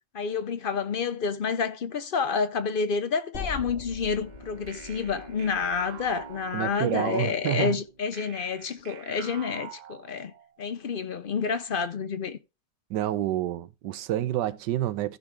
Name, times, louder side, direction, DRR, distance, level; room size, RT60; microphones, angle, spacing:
voice 1, 0.1-10.3 10.6-12.4, left 5 dB, 60° left, 0.5 m, -29 dB
sound 1, 3.3-7.5, left 5 dB, 40° left, 2.0 m, -42 dB
Bowed string instrument, 4.0-8.9, right 2 dB, 30° right, 1.5 m, -49 dB
sound 2, 4.7-7.2 8.1-10.6, right 11 dB, 70° right, 1.1 m, -47 dB
voice 2, 6.5-7.8 12.9-15.2, right 13 dB, 85° right, 1.3 m, -28 dB
14.5 x 5.6 x 3.5 m
omnidirectional pair, 1.8 m